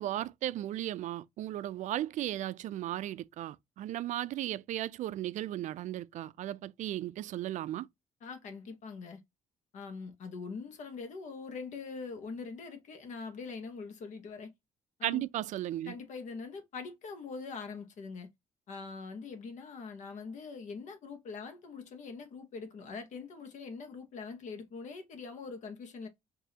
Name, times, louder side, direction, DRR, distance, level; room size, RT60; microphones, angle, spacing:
voice 1, 0.0-7.9 15.0-15.9, right 13 dB, 65° right, 0.4 m, -36 dB
voice 2, 8.2-9.2 9.7-14.5 15.0-15.3 15.8-18.3 18.7-26.1, left 4 dB, 65° left, 1.1 m, -43 dB
4.7 x 2.7 x 2.8 m
cardioid pair, 105°, 14 cm